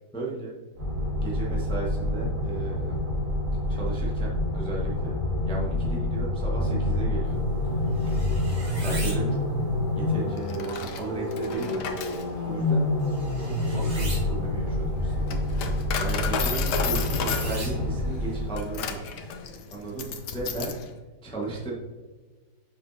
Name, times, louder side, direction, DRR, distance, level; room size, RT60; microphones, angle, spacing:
voice 1, 0.1-0.5 1.2-3.0 3.7-5.1 5.5-7.9 8.8-9.6 10.0-11.9 12.3-12.8 13.3-15.3 16.0-19.1 19.7-20.7 21.2-21.7, right 3 dB, 5° left, -4 dB, 1.0 m, -35 dB
sound 1, 0.8-18.8, left 1 dB, 60° right, 2.6 m, -27 dB
sound 2, 7.2-20.7, right 1 dB, 40° right, 1.9 m, -44 dB
Coin (dropping), 10.4-20.9, left 6 dB, 75° left, 1.3 m, -34 dB
6.3 x 6.1 x 2.7 m, 1.3 s
omnidirectional pair, 1.8 m